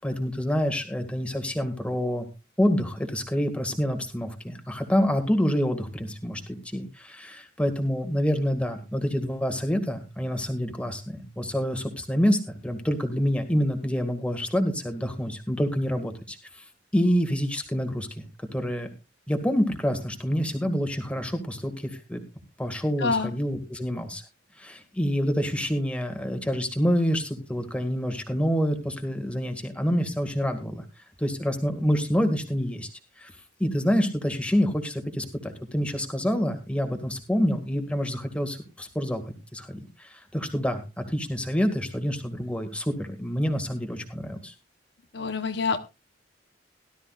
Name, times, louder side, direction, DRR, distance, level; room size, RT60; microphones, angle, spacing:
voice 1, 0.0-2.3 2.6-16.6 16.9-18.2 18.5-18.9 19.3-22.2 22.6-24.2 24.6-30.8 31.2-32.9 33.2-33.3 33.6-39.2 39.5-44.5, equal, 5° left, 6 dB, 2.0 m, -27 dB
voice 2, 23.0-23.3 45.1-45.8, left 4 dB, 60° left, 8 dB, 0.9 m, -26 dB
17.5 x 12.5 x 2.4 m, 0.27 s
head